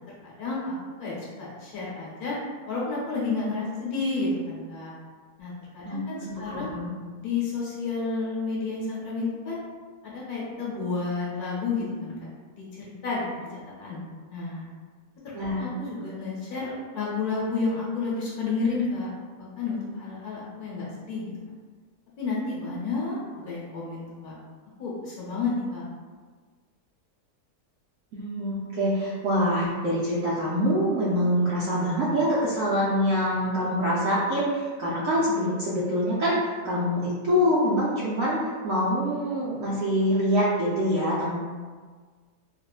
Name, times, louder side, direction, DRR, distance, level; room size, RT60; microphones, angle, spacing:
voice 1, 0.2-2.4 2.6-4.9 5.4-6.7 7.2-9.6 10.0-12.2 12.5-14.0 14.3-14.6 15.4-19.1 19.4-21.3 22.2-24.3 24.8-25.9, left 3 dB, 65° left, -6 dB, 1.2 m, -31 dB
voice 2, 5.8-6.9 15.3-15.7 28.1-38.4 38.6-41.4, equal, 70° right, -7 dB, 0.8 m, -25 dB
3.6 x 2.0 x 2.3 m, 1.5 s
omnidirectional pair, 1.8 m